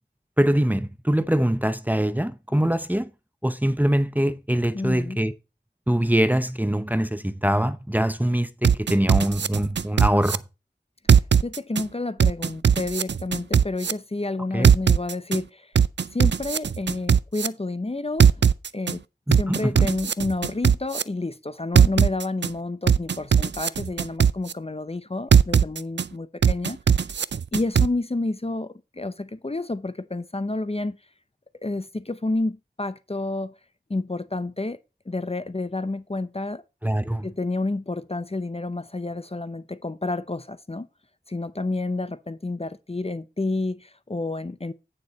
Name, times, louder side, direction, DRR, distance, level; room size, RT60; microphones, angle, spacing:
voice 1, 0.4-3.1 3.4-5.3 5.9-10.4 14.5-14.7 19.3-19.9 36.8-37.3, right 1 dB, 10° right, 0.7 m, -23 dB
voice 2, 4.7-5.2 11.4-15.7 16.1-18.4 18.7-19.0 19.3-26.8 27.5-31.0 31.6-33.5 33.9-34.8 35.1-36.6 37.2-40.9 41.3-44.7, left 2 dB, 35° left, 0.7 m, -30 dB
sound 1, 8.6-10.4 11.1-11.8 12.2-13.9 14.6-15.4 15.7-17.5 18.2-18.9 19.3-21.0 21.7-22.5 22.9-24.5 25.3-26.0 26.4-27.9, right 7 dB, 85° right, 0.4 m, -18 dB
9.2 x 6.6 x 4.2 m
wide cardioid pair, 50°, 18 cm